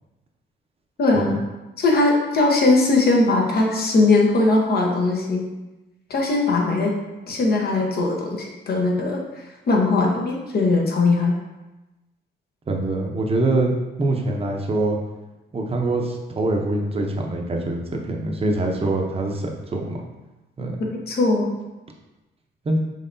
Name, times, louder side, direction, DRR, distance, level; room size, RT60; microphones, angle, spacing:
voice 1, 1.0-1.4 1.8-5.4 6.1-6.9 7.3-9.2 9.7-11.3 20.8-21.5, left 3 dB, 50° left, 0 dB, 1.0 m, -20 dB
voice 2, 12.7-13.7 14.0-15.0 15.5-20.1 20.6-20.8 22.6-22.8, right 2 dB, 30° right, 1 dB, 0.8 m, -24 dB
5.5 x 3.3 x 2.7 m, 1.1 s
cardioid pair, 90°, 20 cm